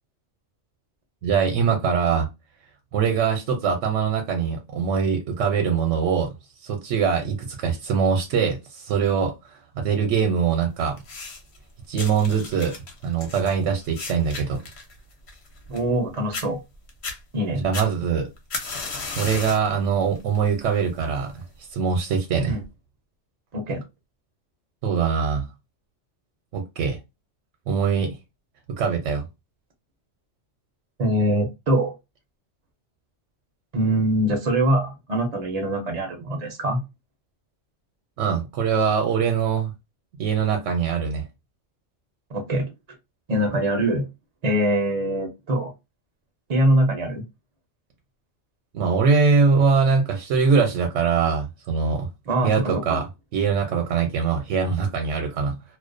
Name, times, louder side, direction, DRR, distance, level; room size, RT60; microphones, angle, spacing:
voice 1, 1.2-2.3 2.9-6.3 6.6-9.3 9.8-11.0 11.9-12.7 13.0-14.6 17.5-18.3 19.2-21.4 21.7-22.6 24.8-25.5 26.5-27.0 27.7-28.1 28.8-29.3 38.2-39.7 40.2-41.3 48.7-52.1 52.4-53.0 53.3-55.6, right 6 dB, 80° right, 0.9 m, -22 dB
sound 1, 11.0-11.6 12.0-16.0 16.3-16.5 16.9-17.2 17.7-19.7 20.2-20.5 21.3-21.4, left 4 dB, 65° left, 0.9 m, -34 dB
voice 2, 15.7-16.6 17.3-17.6 22.5-22.6 23.5-23.8 31.0-31.9 33.7-36.8 42.3-42.7 43.3-44.0 44.4-45.7 46.5-47.2 52.3-53.0, right 1 dB, 45° right, 0.5 m, -23 dB
2.4 x 2.1 x 2.4 m
omnidirectional pair, 1.3 m